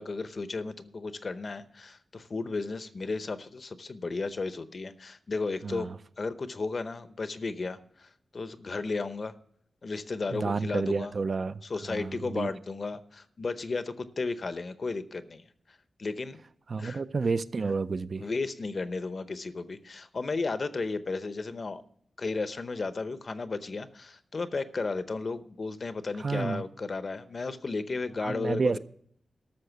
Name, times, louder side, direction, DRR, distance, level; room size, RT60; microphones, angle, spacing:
voice 1, 0.0-5.9 6.2-9.3 9.8-11.1 11.7-15.4 16.0-16.4 16.8-17.0 18.2-21.8 22.2-28.8, left 3 dB, 45° left, 0.7 m, -34 dB
voice 2, 5.6-5.9 10.3-11.6 11.9-12.5 16.7-18.3 26.2-26.6 28.2-28.8, right 4 dB, 50° right, 0.4 m, -30 dB
13.0 x 6.5 x 7.9 m
wide cardioid pair, 140°, 0 cm